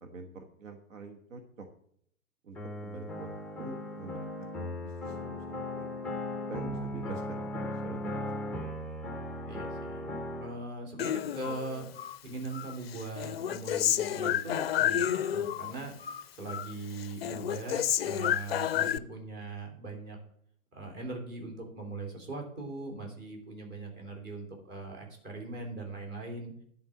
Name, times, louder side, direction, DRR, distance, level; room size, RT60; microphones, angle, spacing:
voice 1, 0.0-1.7 2.4-4.3 4.8-6.0 6.5-8.7, right 3 dB, 60° right, 4 dB, 1.5 m, -45 dB
sound 1, 2.6-10.5, left 1 dB, ahead, 0.6 m, -37 dB
voice 2, 9.4-10.1 10.4-11.9 12.2-15.9 16.3-20.2 20.7-26.5, right 3 dB, 25° right, 1 dB, 3.1 m, -40 dB
Human voice, 11.0-12.2 12.5-15.7 16.0-16.7 17.0-19.0, left 10 dB, 45° left, 0.5 m, -30 dB
11.0 x 4.6 x 8.1 m, 0.67 s
figure-of-eight pair, 115°, 44 cm